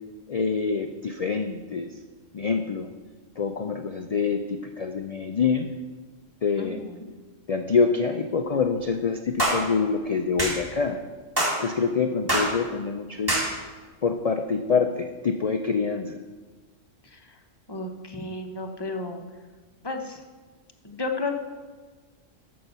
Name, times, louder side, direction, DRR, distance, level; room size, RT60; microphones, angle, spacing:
voice 1, 0.3-1.9 2.3-2.9 3.4-5.7 6.4-6.8 7.5-11.0 11.6-13.6 14.0-16.2, left 5 dB, 80° left, 6 dB, 0.3 m, -26 dB
voice 2, 6.6-7.1 17.0-17.4 17.7-19.2 19.8-20.2 20.8-21.3, left 3 dB, 25° left, 3 dB, 0.7 m, -33 dB
sound 1, 9.4-9.6 10.4-10.6 11.4-11.6 12.3-12.5 13.3-13.5, right 1 dB, 15° right, 2.2 m, -23 dB
8.6 x 6.5 x 6.8 m, 1.4 s
omnidirectional pair, 1.3 m